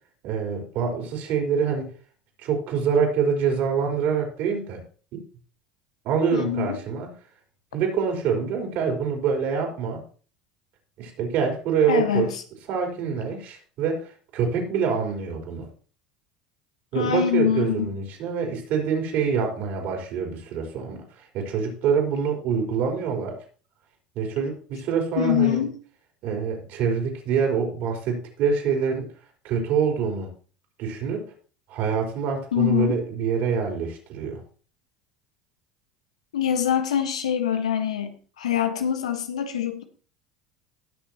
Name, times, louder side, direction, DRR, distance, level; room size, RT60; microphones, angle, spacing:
voice 1, 0.2-1.9 2.4-4.8 6.0-7.1 7.7-10.0 11.0-12.3 12.7-15.7 16.9-23.4 24.2-25.6 26.2-29.1 29.4-30.3 30.8-31.2 31.7-34.4, right 6 dB, 60° right, 1 dB, 4.1 m, -25 dB
voice 2, 6.3-6.8 11.9-12.4 16.9-17.9 25.2-25.7 32.5-33.0 36.3-39.8, left 9 dB, 85° left, 7 dB, 1.4 m, -24 dB
19.0 x 6.6 x 3.0 m, 0.40 s
hypercardioid pair, 75°, 3 cm